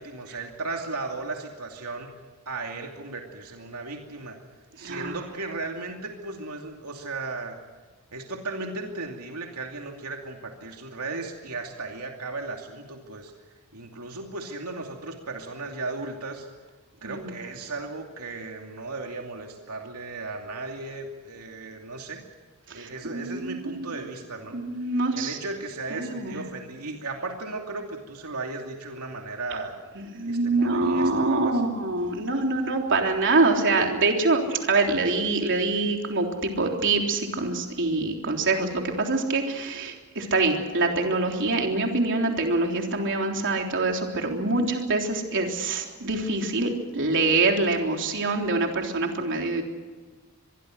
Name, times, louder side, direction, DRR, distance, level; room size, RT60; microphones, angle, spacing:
voice 1, 0.0-2.1 2.5-4.4 4.8-7.6 8.1-13.3 13.7-16.5 17.0-22.2 22.7-24.6 25.1-29.7 30.2-31.6, right 3 dB, 85° right, 2 dB, 2.7 m, -36 dB
voice 2, 4.8-5.2 17.0-17.3 22.7-23.9 24.5-25.4 25.9-26.4 30.0-49.6, right 3 dB, 55° right, 2 dB, 3.6 m, -25 dB
25.5 x 22.5 x 6.5 m, 1.4 s
head